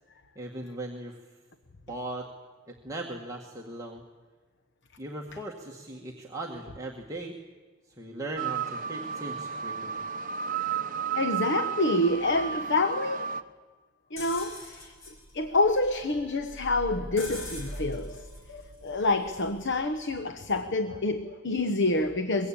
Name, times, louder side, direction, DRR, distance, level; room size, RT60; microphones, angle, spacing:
voice 1, 0.4-1.2 1.9-2.3 2.7-4.0 5.0-7.4 8.0-10.0, right 1 dB, 15° right, -2 dB, 1.8 m, -38 dB
sound 1, 8.4-13.4, right 7 dB, 40° right, 1.0 m, -33 dB
voice 2, 11.2-13.4 14.1-14.9 15.3-22.5, left 2 dB, 55° left, 9 dB, 1.0 m, -27 dB
sound 2, 14.2-20.0, equal, 70° left, 5.4 m, -42 dB
23.5 x 22.5 x 8.7 m, 1.4 s
head